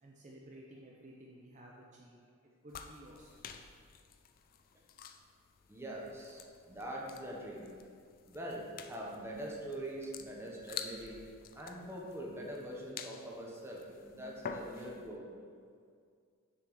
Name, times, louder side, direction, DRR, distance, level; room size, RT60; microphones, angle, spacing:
voice 1, 0.0-2.2 2.6-3.5, right 1 dB, 35° right, -3 dB, 0.6 m, -54 dB
sound 1, 2.7-15.1, left 6 dB, 45° left, 0.3 m, -49 dB
voice 2, 5.7-7.7 8.2-11.2 11.5-15.3, right 1 dB, 10° right, -2 dB, 0.8 m, -43 dB
6.7 x 5.9 x 3.1 m, 2.2 s
head